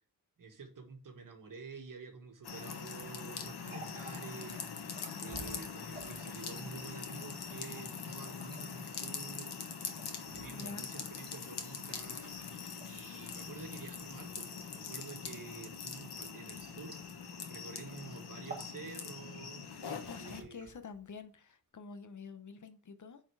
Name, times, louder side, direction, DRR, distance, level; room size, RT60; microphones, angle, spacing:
voice 1, 0.4-4.6 5.2-9.6 10.3-12.3 12.8-17.0 17.5-20.7, right 4 dB, 55° right, 1.8 m, -49 dB
sound 1, 2.4-20.4, left 6 dB, 85° left, 1.4 m, -43 dB
Water tap faucet, 3.5-17.5 17.8-18.0 18.3-18.8 19.1-19.8 20.4-21.2, right 3 dB, 25° right, 1.6 m, -54 dB
Engine starting, 5.4-5.5 10.6-10.7 11.1-11.2 12.2-21.0 21.3-21.4 21.6-21.7, left 1 dB, 5° right, 3.6 m, -63 dB
voice 2, 10.5-10.9 20.1-23.2, left 4 dB, 50° left, 0.9 m, -48 dB
9.1 x 4.4 x 4.7 m
wide cardioid pair, 155°, 38 cm